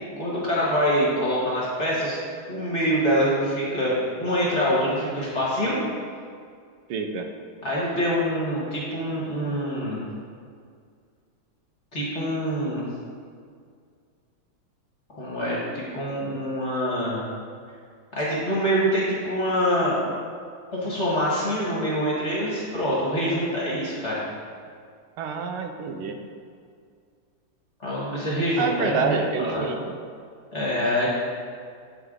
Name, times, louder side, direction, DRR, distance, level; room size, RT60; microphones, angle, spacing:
voice 1, 0.0-2.2 2.5-5.8 7.6-10.0 11.9-12.9 15.2-17.3 18.1-20.0 20.7-24.2 27.8-29.7 30.5-31.1, equal, 35° left, -6 dB, 1.6 m, -25 dB
voice 2, 6.9-7.3 25.2-26.2 28.6-29.8, right 5 dB, 90° right, 5 dB, 1.5 m, -27 dB
8.2 x 4.8 x 3.7 m, 2.2 s
omnidirectional pair, 2.3 m